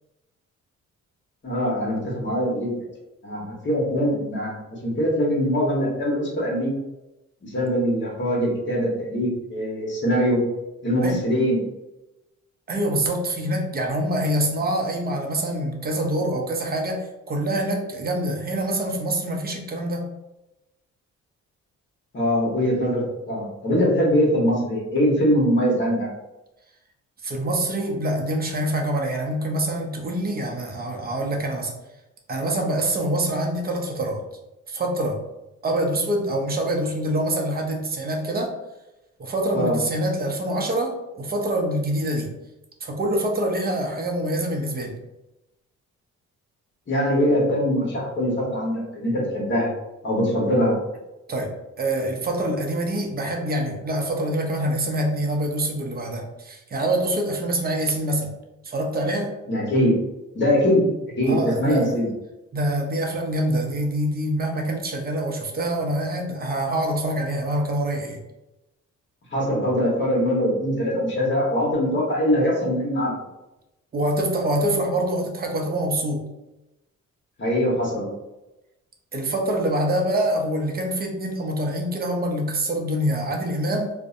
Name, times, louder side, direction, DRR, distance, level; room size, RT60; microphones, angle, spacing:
voice 1, 1.4-2.7 3.2-4.5 4.8-6.7 7.4-10.4 10.8-11.6 22.1-26.1 39.5-39.8 46.9-49.7 50.0-50.7 59.5-60.0 60.3-60.8 61.2-62.1 69.3-73.1 77.4-78.1, equal, 40° left, -3 dB, 1.1 m, -22 dB
voice 2, 12.7-20.1 27.2-31.7 32.3-34.2 34.7-35.2 35.6-38.5 39.2-42.3 42.8-44.9 51.3-51.5 51.8-58.3 58.6-59.3 61.2-62.0 62.5-68.2 73.9-76.2 79.1-83.9, right 1 dB, 30° right, 1 dB, 0.5 m, -25 dB
2.6 x 2.1 x 2.5 m, 0.97 s
cardioid pair, 90°, 30 cm